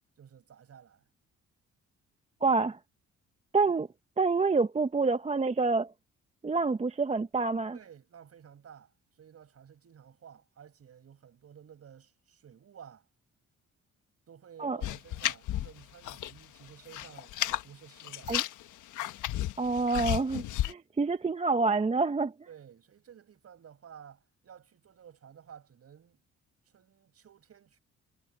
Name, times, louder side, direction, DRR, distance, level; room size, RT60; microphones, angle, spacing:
voice 1, 0.2-1.1 7.7-13.1 14.3-18.3 22.5-26.2 26.7-27.8, right 8 dB, 55° right, 5.4 m, -53 dB
voice 2, 2.4-2.8 3.5-3.9 4.2-5.9 6.4-7.8 14.6-14.8 18.3-18.4 19.6-22.3, right 4 dB, 20° right, 0.8 m, -27 dB
sound 1, 14.8-16.4 16.7-17.6 18.0-20.7, left 13 dB, 80° left, 1.4 m, -33 dB
cardioid pair, 90°, 30 cm